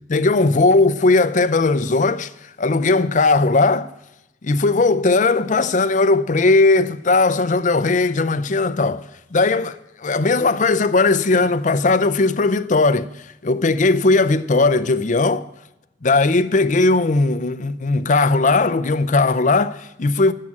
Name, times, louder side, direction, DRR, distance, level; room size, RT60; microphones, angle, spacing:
voice 1, 0.1-3.9 4.4-13.1 13.4-15.5 16.0-20.3, left 3 dB, 45° left, 0.5 m, -18 dB
11.0 x 7.5 x 8.5 m
head